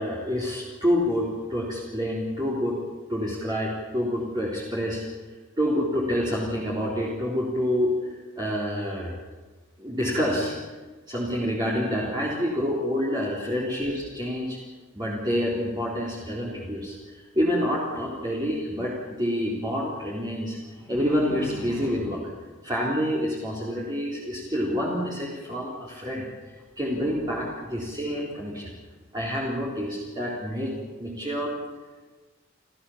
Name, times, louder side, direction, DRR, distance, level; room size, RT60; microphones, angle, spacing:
voice 1, 0.0-2.8 3.1-5.0 5.6-9.1 9.8-10.6 11.1-14.6 14.9-22.2 22.6-28.7 29.1-30.7 31.0-31.5, equal, 20° right, -6 dB, 3.7 m, -28 dB
29.0 x 15.0 x 7.2 m, 1.3 s
head